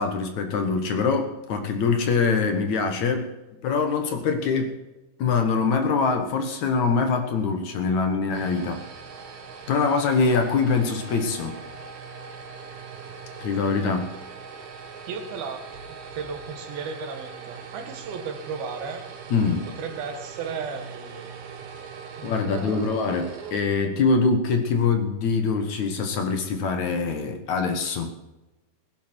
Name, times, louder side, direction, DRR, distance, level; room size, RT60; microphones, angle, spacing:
voice 1, 0.0-3.3 3.6-4.8 5.2-8.8 9.7-11.6 13.4-14.1 19.3-19.7 22.2-28.1, left 4 dB, 60° left, 6 dB, 2.5 m, -24 dB
sound 1, 8.0-24.2, right 5 dB, 60° right, 2.7 m, -41 dB
voice 2, 15.1-19.1 19.8-21.4 22.1-22.9, right 5 dB, 90° right, 6 dB, 3.6 m, -35 dB
20.5 x 11.0 x 4.5 m, 1.0 s
omnidirectional pair, 4.2 m